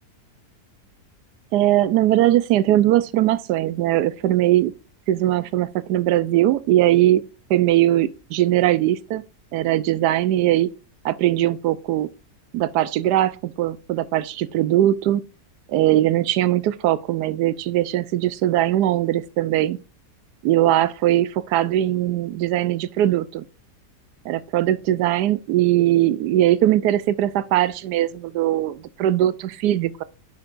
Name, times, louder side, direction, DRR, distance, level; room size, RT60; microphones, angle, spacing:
voice 1, 1.5-4.7 5.1-7.2 7.5-9.2 9.5-10.7 11.0-12.1 12.5-15.2 15.7-19.8 20.4-23.4 24.2-30.0, right 13 dB, 80° right, 1.2 m, -20 dB
9.7 x 5.9 x 2.5 m
omnidirectional pair, 1.8 m